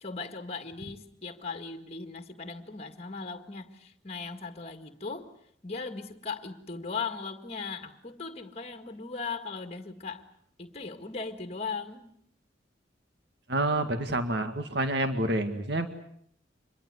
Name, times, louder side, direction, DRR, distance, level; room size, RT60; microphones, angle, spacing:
voice 1, 0.0-5.3 5.6-10.3 10.6-12.1, left 4 dB, 35° left, 7 dB, 1.9 m, -38 dB
voice 2, 13.5-15.9, right 1 dB, 65° right, 8 dB, 2.0 m, -28 dB
26.0 x 22.0 x 8.2 m, 0.66 s
head